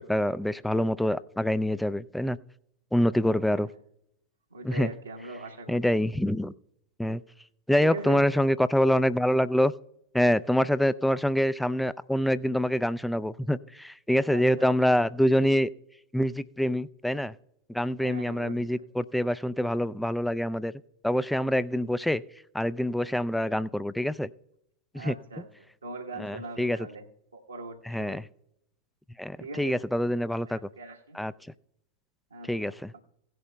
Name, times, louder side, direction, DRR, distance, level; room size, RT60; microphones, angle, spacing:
voice 1, 0.0-2.4 2.9-3.7 4.6-4.9 5.7-6.5 7.0-7.2 7.7-9.7 10.1-15.7 16.1-17.3 17.7-20.7 21.0-22.2 22.5-24.3 24.9-25.1 26.2-26.8 27.9-28.2 29.2-30.6 31.1-31.3 32.5-32.9, equal, 5° left, 17 dB, 0.3 m, -25 dB
voice 2, 4.5-5.8 7.8-8.3 14.3-14.7 18.0-18.9 21.7-21.9 24.9-27.0 27.3-28.2 29.4-29.8 30.3-31.2 32.3-33.0, right 3 dB, 75° right, -1 dB, 1.1 m, -41 dB
17.0 x 11.0 x 2.2 m, 0.76 s
figure-of-eight pair, 90°, 0 cm